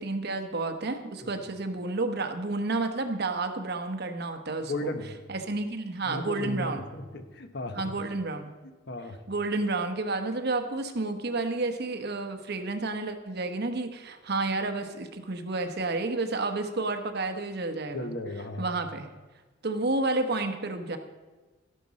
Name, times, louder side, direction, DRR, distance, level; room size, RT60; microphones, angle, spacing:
voice 1, 0.0-4.9 5.3-6.9 7.8-8.6 9.3-18.1 18.6-19.1 19.6-21.0, right 3 dB, 55° right, 7 dB, 1.0 m, -30 dB
voice 2, 4.7-5.2 6.0-7.9 8.9-9.2 17.9-18.7, left 1 dB, 60° left, 7 dB, 1.1 m, -35 dB
13.0 x 11.0 x 4.1 m, 1.3 s
head